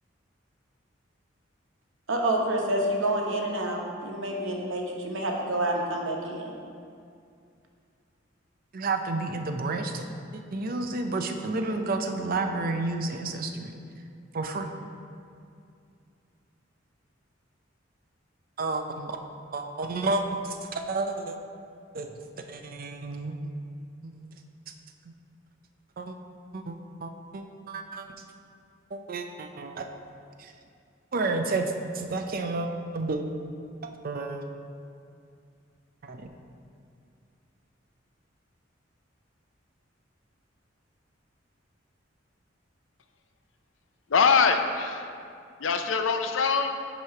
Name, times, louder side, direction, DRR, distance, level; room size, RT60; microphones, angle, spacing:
voice 1, 2.1-6.5, right 1 dB, 80° right, 0 dB, 1.0 m, -28 dB
voice 2, 8.7-10.1 10.3-13.7 14.3-14.7 18.6-19.2 19.5-21.4 21.9-22.1 22.5-23.5 24.0-24.3 26.0-26.1 26.5-26.8 27.0-28.1 28.9-29.9 30.4-30.5 31.1-31.6 31.9-32.7 32.9-33.2 34.0-34.4 36.0-36.3, right 3 dB, 50° right, 5 dB, 0.5 m, -31 dB
voice 3, 44.1-45.1 45.6-46.8, left 5 dB, 75° left, 7 dB, 0.5 m, -23 dB
8.7 x 3.1 x 5.7 m, 2.4 s
head